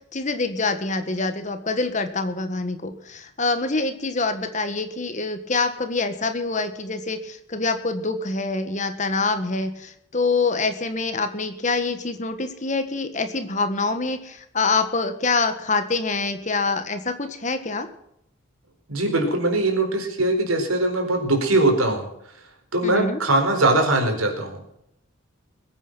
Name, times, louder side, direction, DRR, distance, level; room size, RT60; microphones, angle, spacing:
voice 1, 0.1-17.9 22.8-23.2, left 3 dB, 35° left, 9 dB, 1.6 m, -25 dB
voice 2, 18.9-22.1 22.7-24.8, right 2 dB, 85° right, 4 dB, 4.5 m, -21 dB
21.5 x 9.0 x 6.1 m, 0.77 s
head